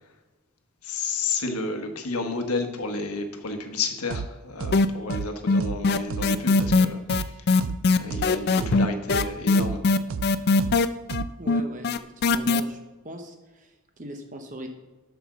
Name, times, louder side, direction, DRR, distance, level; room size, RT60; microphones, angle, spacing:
voice 1, 0.8-7.0 8.0-9.8, left 3 dB, 85° left, 6 dB, 1.2 m, -31 dB
sound 1, 4.1-4.3 4.6-4.8 5.1-5.3 5.6-5.8 6.1-6.3 6.6-6.8 7.1-7.3 7.6-7.8 8.1-8.3 8.6-8.8 9.1-9.3 9.6-9.8 10.1-10.3 10.6-10.8 11.1-11.3, right 5 dB, 65° right, 0.4 m, -31 dB
sound 2, 4.7-5.2 5.5-12.6, left 3 dB, 50° left, 0.4 m, -20 dB
voice 2, 11.4-12.8 13.0-14.7, equal, 35° right, 4 dB, 0.9 m, -40 dB
7.7 x 5.9 x 6.1 m, 1.2 s
head